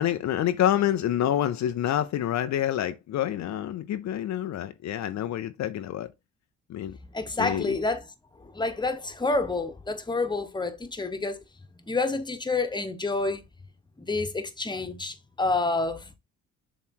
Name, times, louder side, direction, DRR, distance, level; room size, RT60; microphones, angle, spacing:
voice 1, 0.0-6.1 6.7-7.0 7.4-7.8, left 11 dB, 65° left, 0.6 m, -27 dB
voice 2, 7.1-8.0 8.4-11.4 11.9-13.4 14.0-16.2, left 3 dB, 15° left, 1.2 m, -28 dB
7.2 x 3.2 x 4.5 m
cardioid pair, 90°, 30 cm